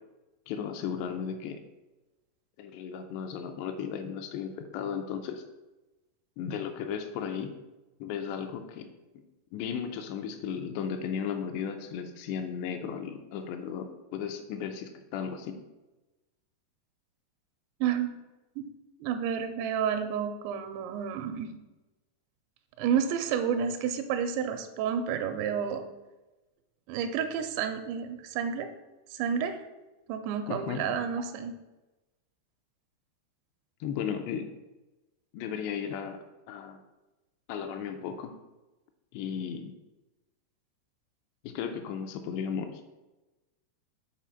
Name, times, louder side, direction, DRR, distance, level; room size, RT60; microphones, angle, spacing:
voice 1, 0.5-1.6 2.6-5.4 6.4-7.5 8.0-8.9 9.5-15.6 30.5-30.8 33.8-34.5 35.3-36.2 36.5-36.8 37.5-38.4 39.1-39.7 41.4-42.8, left 7 dB, 80° left, 6 dB, 2.7 m, -35 dB
voice 2, 17.8-18.2 18.6-18.7 19.0-21.5 22.8-25.9 26.9-28.7 29.1-29.6 30.1-31.5, right 7 dB, 85° right, 8 dB, 2.9 m, -30 dB
7.3 x 4.3 x 5.6 m, 1.1 s
omnidirectional pair, 5.1 m